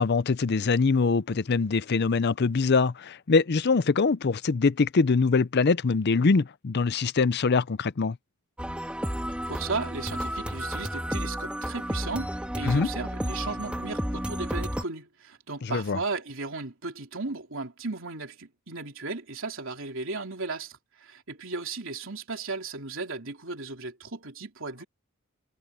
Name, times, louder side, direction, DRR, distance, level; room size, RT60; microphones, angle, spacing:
voice 1, 0.0-8.2 12.6-12.9 15.6-16.0, left 4 dB, 50° left, 0.5 m, -23 dB
sound 1, 8.6-14.8, equal, 5° right, 2.0 m, -32 dB
voice 2, 9.5-24.8, right 3 dB, 60° right, 3.7 m, -35 dB
head